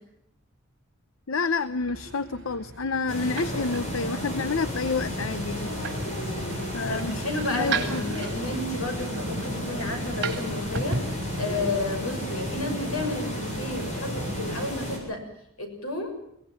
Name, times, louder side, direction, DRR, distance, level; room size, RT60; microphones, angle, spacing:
voice 1, 1.3-5.7 6.7-8.0, left 4 dB, 70° left, 14 dB, 0.8 m, -29 dB
sound 1, 1.6-12.2, right 4 dB, 55° right, 3.8 m, -37 dB
sound 2, 3.1-15.0, equal, 35° left, 7.4 m, -32 dB
voice 2, 6.9-15.2 15.6-16.1, left 2 dB, 90° left, 5 dB, 6.5 m, -32 dB
22.0 x 18.5 x 7.6 m, 0.75 s
head